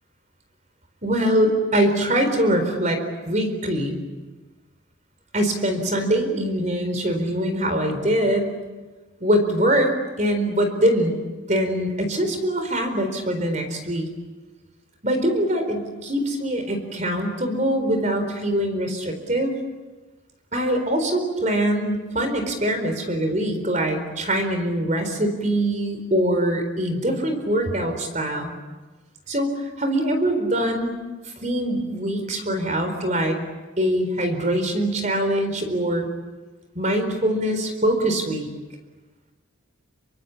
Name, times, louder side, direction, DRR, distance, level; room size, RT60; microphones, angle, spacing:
voice 1, 1.0-3.0 3.3-4.0 5.3-8.5 9.2-11.1 11.5-14.1 15.0-19.5 20.5-28.5 29.3-29.5 29.8-30.9 31.4-33.4 33.8-36.1 36.7-38.5, right 1 dB, 35° right, 6 dB, 4.3 m, -23 dB
27.0 x 25.0 x 8.6 m, 1.3 s
head